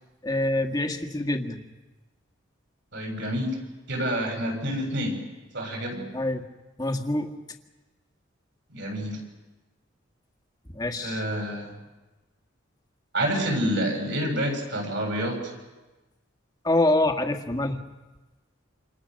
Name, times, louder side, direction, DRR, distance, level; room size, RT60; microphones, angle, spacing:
voice 1, 0.2-1.7 6.1-6.4 6.8-7.3 10.7-11.2 16.6-17.8, left 1 dB, 20° left, 4 dB, 1.7 m, -25 dB
voice 2, 2.9-3.6 3.9-5.2 5.5-6.1 8.7-9.2 11.0-11.7 13.1-15.5, equal, 65° right, 2 dB, 7.2 m, -28 dB
28.5 x 27.5 x 6.5 m, 1.2 s
head